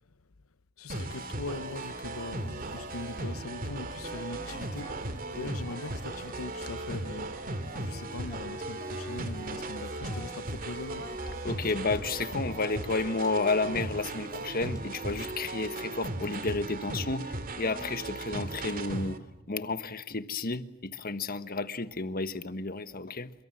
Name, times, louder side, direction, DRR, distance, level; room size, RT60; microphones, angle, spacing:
voice 1, 0.8-11.1, left 3 dB, 90° left, 0.9 m, -41 dB
sound 1, 0.9-19.2, right 2 dB, 40° right, 2.5 m, -37 dB
sound 2, 1.0-15.5, left 1 dB, 20° left, 4.2 m, -51 dB
voice 2, 11.4-19.2 19.5-23.3, left 3 dB, 45° left, 1.4 m, -31 dB
29.0 x 23.5 x 7.6 m
head